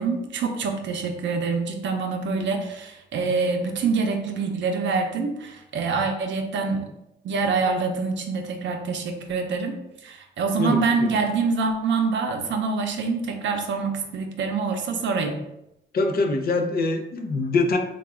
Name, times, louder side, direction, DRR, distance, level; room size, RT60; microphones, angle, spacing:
voice 1, 0.0-6.8 7.2-9.8 10.0-15.4, right 4 dB, 65° right, 4 dB, 0.6 m, -25 dB
voice 2, 10.6-11.2 15.9-17.8, left 3 dB, 50° left, 4 dB, 0.5 m, -24 dB
3.5 x 2.3 x 3.4 m, 0.84 s
cardioid pair, 90°, 20 cm